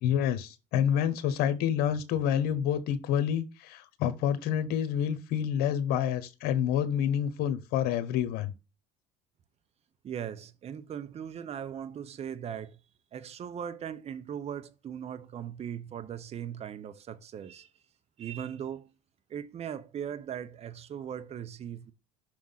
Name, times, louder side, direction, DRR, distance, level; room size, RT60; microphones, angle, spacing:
voice 1, 0.0-8.5, left 9 dB, 65° left, 1.2 m, -28 dB
voice 2, 10.0-12.8 13.1-17.7 18.2-18.9 19.3-21.9, right 9 dB, 35° right, 0.8 m, -39 dB
6.1 x 3.6 x 5.7 m
supercardioid pair, 95°, 17 cm